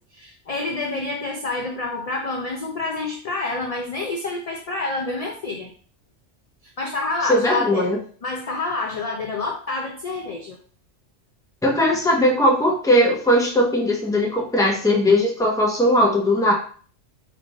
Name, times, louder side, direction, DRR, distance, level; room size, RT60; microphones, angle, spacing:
voice 1, 0.1-5.7 6.8-7.9 8.2-10.6, left 3 dB, 55° left, 1 dB, 0.4 m, -28 dB
voice 2, 7.3-8.0 11.6-16.5, left 1 dB, 5° left, -1 dB, 0.6 m, -19 dB
3.5 x 2.4 x 4.0 m, 0.43 s
omnidirectional pair, 1.2 m